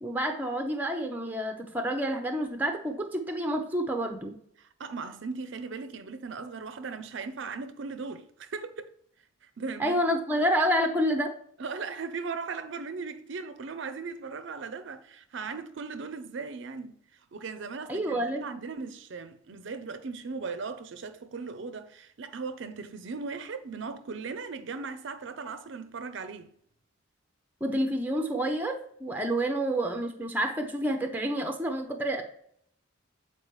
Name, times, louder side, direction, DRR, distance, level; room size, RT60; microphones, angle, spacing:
voice 1, 0.0-4.4 9.8-11.4 17.9-18.4 27.6-32.2, right 1 dB, 10° right, 0.6 m, -29 dB
voice 2, 4.6-8.9 9.4-10.0 11.6-26.5, right 4 dB, 60° right, 0.5 m, -38 dB
8.0 x 4.3 x 3.1 m
head